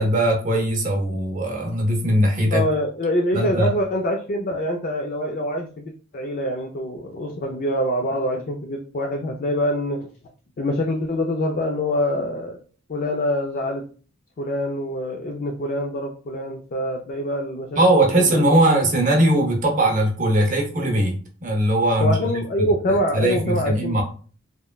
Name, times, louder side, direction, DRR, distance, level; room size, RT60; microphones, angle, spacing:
voice 1, 0.0-2.6 3.3-3.7 17.8-22.4 22.9-24.0, right 1 dB, 40° right, 1 dB, 0.6 m, -20 dB
voice 2, 2.5-10.1 10.6-12.6 12.9-13.8 14.4-18.6 22.0-24.0, equal, 40° left, 1 dB, 0.3 m, -25 dB
2.9 x 2.2 x 2.2 m, 0.40 s
head